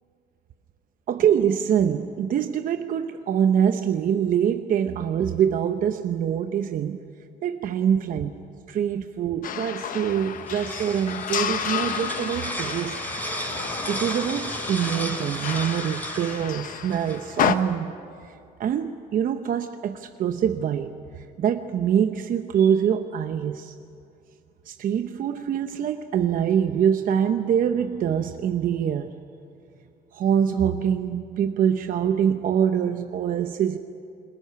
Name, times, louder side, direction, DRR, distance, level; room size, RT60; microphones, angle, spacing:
voice 1, 1.1-7.0 7.4-8.3 8.7-12.9 13.9-17.9 18.6-23.7 24.7-29.1 30.1-33.8, right 8 dB, 55° right, 7 dB, 0.9 m, -24 dB
sound 1, 9.4-17.5, left 9 dB, 55° left, 1.1 m, -31 dB
sound 2, 10.1-17.6, equal, 10° left, 6.0 m, -34 dB
23.0 x 20.0 x 9.5 m, 2.6 s
cardioid pair, 110°, 17 cm